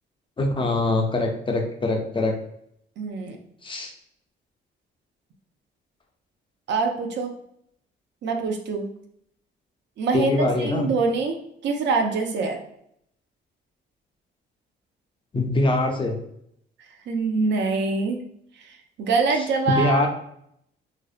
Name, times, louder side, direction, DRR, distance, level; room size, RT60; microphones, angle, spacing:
voice 1, 0.4-2.3 3.6-3.9 10.1-10.9 15.3-16.2 19.7-20.1, left 2 dB, 25° left, 2 dB, 0.4 m, -23 dB
voice 2, 3.0-3.4 6.7-7.3 8.2-8.9 10.0-11.3 11.6-12.6 17.1-18.2 18.6-20.1, right 4 dB, 65° right, 4 dB, 0.5 m, -24 dB
2.6 x 2.0 x 2.4 m, 0.72 s
cardioid pair, 90°, 20 cm